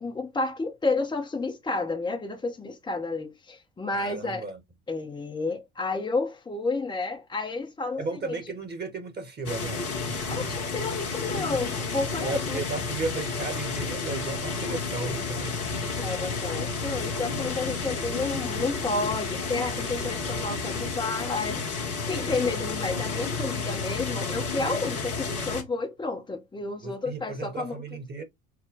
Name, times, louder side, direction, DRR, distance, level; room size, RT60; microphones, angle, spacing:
voice 1, 0.0-4.4 4.9-8.4 10.3-12.6 15.8-27.8, left 3 dB, 10° left, 0.7 m, -31 dB
voice 2, 3.9-4.6 8.0-10.4 12.2-15.8 26.8-28.2, right 3 dB, 20° right, 1.2 m, -35 dB
sound 1, 9.5-25.6, left 4 dB, 80° left, 1.0 m, -31 dB
5.8 x 2.2 x 3.5 m
figure-of-eight pair, 65°, 43 cm